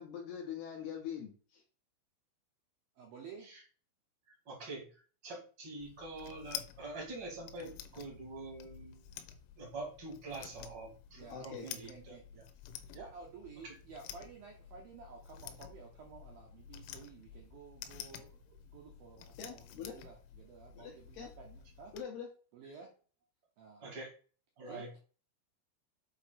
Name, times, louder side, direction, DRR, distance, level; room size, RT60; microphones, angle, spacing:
voice 1, 0.0-1.6 11.3-11.7 19.4-20.0 20.7-21.3 21.9-22.3, left 7 dB, 70° left, 1 dB, 2.5 m, -43 dB
voice 2, 3.0-3.5 11.1-12.3 12.9-21.9 22.5-22.9 23.6-23.9 24.7-25.0, right 5 dB, 85° right, 1 dB, 2.0 m, -53 dB
voice 3, 4.4-4.8 5.2-9.0 9.6-12.1 12.9-13.1 13.6-13.7 23.8-24.1 24.6-24.9, right 2 dB, 55° right, 0 dB, 1.2 m, -45 dB
sound 1, 5.8-22.0, left 10 dB, 90° left, 3.3 m, -50 dB
8.0 x 3.0 x 5.7 m, 0.39 s
omnidirectional pair, 5.8 m